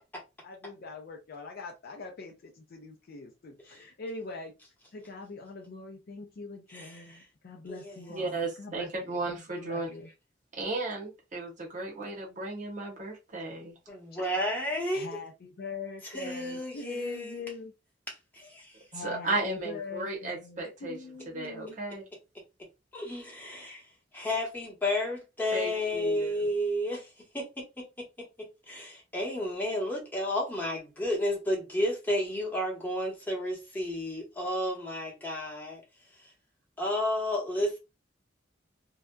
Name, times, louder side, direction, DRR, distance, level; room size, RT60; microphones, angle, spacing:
voice 1, 0.4-4.5 4.9-10.1 14.9-17.7 18.9-21.8, left 4 dB, 55° left, 0.4 m, -43 dB
voice 2, 6.7-7.2 7.7-8.2 13.9-15.2 16.0-17.4 18.1-18.7 22.9-23.8 24.1-27.1 27.3-28.1 28.4-35.8 36.8-37.8, left 1 dB, 10° left, 0.9 m, -32 dB
voice 3, 8.1-9.9 10.5-13.7 18.9-21.0 21.3-22.0 25.5-26.5, right 2 dB, 40° right, 0.8 m, -35 dB
2.7 x 2.2 x 2.2 m
head